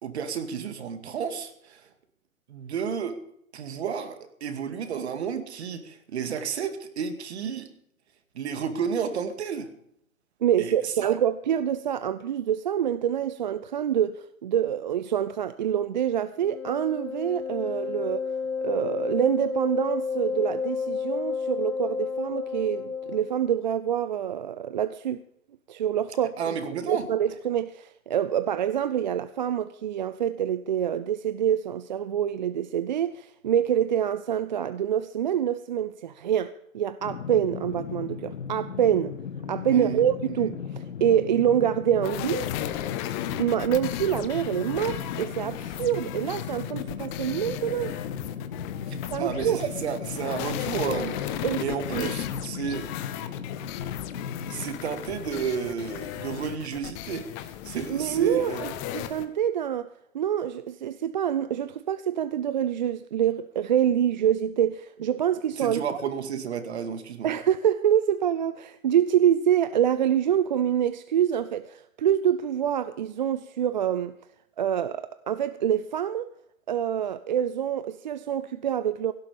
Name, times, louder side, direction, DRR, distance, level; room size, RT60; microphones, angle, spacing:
voice 1, 0.0-1.8 2.5-3.2 3.5-7.7 8.3-9.7 10.6-11.2 26.4-27.0 39.7-40.0 40.4-40.5 48.9-52.9 54.5-58.7 65.6-67.3, right 7 dB, 50° right, 2.2 m, -32 dB
voice 2, 10.4-18.2 18.6-25.2 25.7-26.4 26.9-39.2 39.5-42.5 43.4-47.9 49.1-49.6 51.4-51.6 51.9-52.1 57.9-58.5 58.9-59.9 60.1-65.9 67.2-74.1 74.6-76.3 76.7-79.1, right 10 dB, 35° right, 0.5 m, -26 dB
Wind instrument woodwind instrument, 16.4-23.4, left 5 dB, 80° left, 3.0 m, -31 dB
sound 1, 37.0-54.7, left 7 dB, 60° left, 1.6 m, -36 dB
sound 2, 42.0-59.2, left 12 dB, 20° left, 0.9 m, -36 dB
17.0 x 11.5 x 5.2 m
figure-of-eight pair, 125°, 41 cm